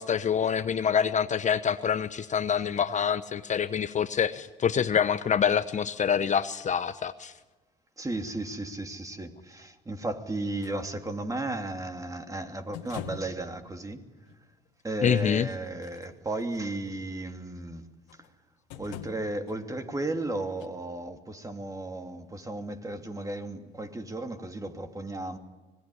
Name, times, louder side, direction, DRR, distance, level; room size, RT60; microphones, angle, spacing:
voice 1, 0.0-7.3 15.0-15.5, left 7 dB, 40° left, 1.0 m, -26 dB
voice 2, 8.0-14.0 14.8-17.9 18.7-25.4, right 2 dB, 15° right, 2.8 m, -34 dB
sound 1, 10.6-10.8 12.7-13.4 14.3-14.4 15.7-16.6 18.1-18.3 18.7-19.6 20.6-20.7, left 9 dB, 80° left, 2.1 m, -42 dB
25.5 x 18.5 x 9.9 m
supercardioid pair, 70°, 19 cm